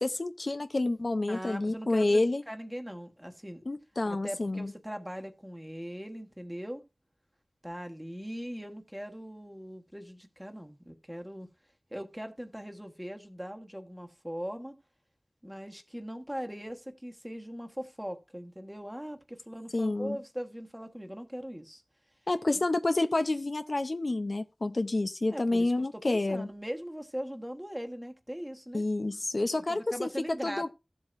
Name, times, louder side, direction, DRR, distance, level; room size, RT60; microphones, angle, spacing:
voice 1, 0.0-2.4 3.7-4.7 19.7-20.2 22.3-26.5 28.7-30.7, left 2 dB, 60° left, 0.6 m, -29 dB
voice 2, 1.3-3.6 4.0-6.8 7.6-11.5 11.9-14.7 15.4-21.8 22.5-22.6 25.3-28.8 29.4-30.7, equal, 5° right, 1.3 m, -40 dB
14.5 x 7.7 x 2.6 m
wide cardioid pair, 60°, 0 cm